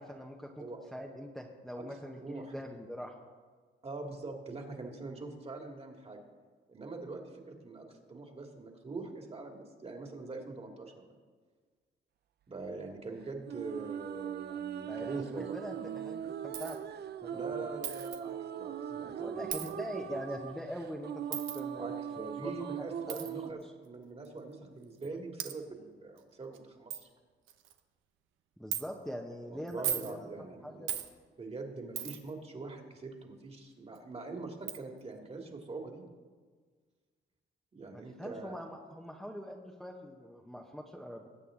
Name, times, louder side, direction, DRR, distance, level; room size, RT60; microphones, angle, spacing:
voice 1, 0.0-0.6 0.9-3.1 14.9-16.8 17.2-17.5 18.9-22.0 22.4-23.2 28.6-30.3 30.6-30.9 37.9-41.3, equal, ahead, 0 dB, 1.0 m, -43 dB
voice 2, 2.1-2.5 3.8-6.2 6.7-11.1 12.5-15.5 17.3-19.7 20.1-20.2 21.8-27.1 29.5-30.8 31.4-36.0 37.7-38.6, right 3 dB, 30° right, 2 dB, 2.2 m, -43 dB
sound 1, 13.5-23.5, right 9 dB, 55° right, 0.6 m, -40 dB
Coin (dropping), 16.5-16.8 17.8-18.2 19.5-19.7 21.3-21.6 23.1-23.3 24.2-24.3 25.0-25.1 25.4-25.5 26.2-26.3 26.5-26.6 26.9-27.0 27.5-27.8 28.7-28.8 29.7-30.1 30.9-31.1 32.0-32.3 34.0-34.1 34.7-34.8, right 10 dB, 80° right, 0.9 m, -36 dB
20.5 x 8.3 x 3.8 m, 1.5 s
cardioid pair, 90°, 20 cm